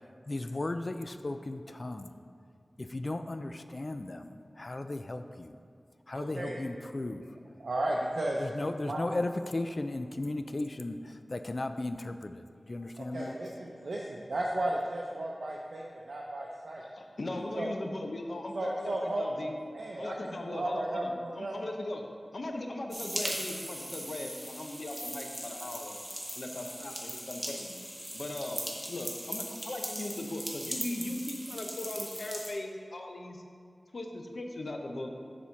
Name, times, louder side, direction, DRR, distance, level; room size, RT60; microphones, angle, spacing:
voice 1, 0.3-2.1 2.8-5.6 6.1-7.2 8.4-13.4, left 2 dB, 50° left, 9 dB, 0.4 m, -36 dB
voice 2, 6.1-6.6 7.6-8.4 8.9-9.0 13.0-16.8 17.5-17.7 18.5-19.3 19.7-21.7, right 1 dB, 85° right, -3 dB, 0.6 m, -34 dB
voice 3, 16.9-19.5 20.0-22.0 22.3-26.0 26.3-27.8 28.1-28.6 28.9-33.4 33.9-35.1, left 1 dB, 75° left, 3 dB, 0.8 m, -38 dB
sound 1, 22.9-32.5, equal, 5° right, 1.4 m, -39 dB
7.1 x 4.2 x 6.2 m, 2.3 s
wide cardioid pair, 45°, 0 cm